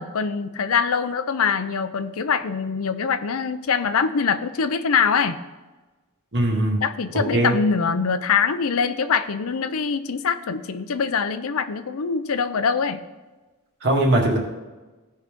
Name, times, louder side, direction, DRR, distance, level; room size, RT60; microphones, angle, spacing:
voice 1, 0.0-5.4 6.8-13.0, left 6 dB, 65° left, 11 dB, 0.6 m, -23 dB
voice 2, 6.3-6.8 7.1-7.5 13.8-14.4, right 1 dB, 50° right, -1 dB, 2.1 m, -20 dB
15.5 x 5.5 x 3.6 m, 1.2 s
head